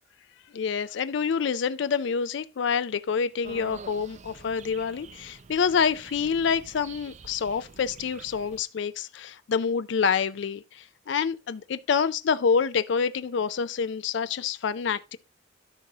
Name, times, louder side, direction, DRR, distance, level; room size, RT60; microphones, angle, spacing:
voice 1, 0.5-15.2, left 6 dB, 60° left, 0.4 m, -27 dB
sound 1, 3.4-8.6, right 5 dB, 35° right, 0.4 m, -47 dB
13.5 x 5.3 x 2.8 m
head